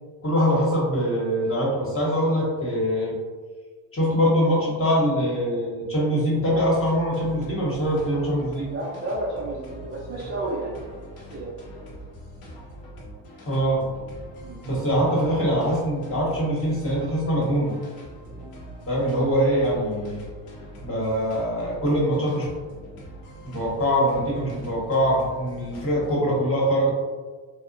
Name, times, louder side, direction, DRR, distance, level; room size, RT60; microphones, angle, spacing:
voice 1, 0.2-3.2 3.9-8.7 13.5-13.8 14.6-17.7 18.9-20.2 20.8-22.5 23.4-26.9, equal, 25° left, -5 dB, 1.2 m, -23 dB
sound 1, 6.5-26.2, equal, 85° left, 0.9 m, -42 dB
voice 2, 8.7-10.8 11.3-11.6 14.4-14.6, right 2 dB, 25° right, -7 dB, 0.6 m, -31 dB
2.8 x 2.1 x 2.6 m, 1.4 s
supercardioid pair, 70°, 50 cm